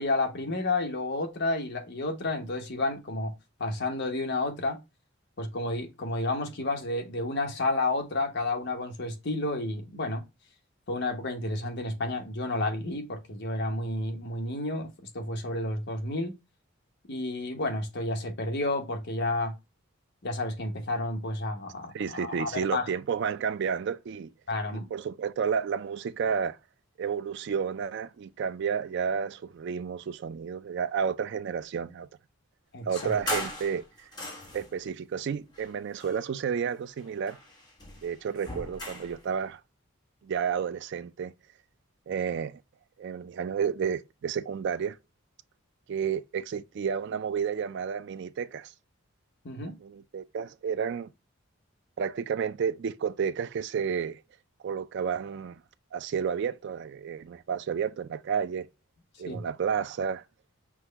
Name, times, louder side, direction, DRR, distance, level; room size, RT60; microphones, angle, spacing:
voice 1, 0.0-3.3 3.6-4.8 5.4-10.2 10.9-16.4 17.1-19.6 20.2-22.9 24.5-24.9 32.7-33.1 49.4-49.8 59.3-59.4, left 2 dB, 55° left, 1.1 m, -31 dB
voice 2, 21.9-24.3 24.7-26.6 27.0-32.1 32.9-34.1 34.5-37.4 38.0-39.6 40.2-41.3 42.1-42.6 43.0-45.0 45.9-48.7 49.8-51.1 52.0-54.2 54.6-55.6 55.9-58.7 59.2-60.2, right 7 dB, 55° right, 0.3 m, -31 dB
sound 1, 32.9-34.8 35.5-36.7 37.0-39.2, left 1 dB, 20° left, 1.3 m, -38 dB
6.0 x 2.2 x 3.3 m
head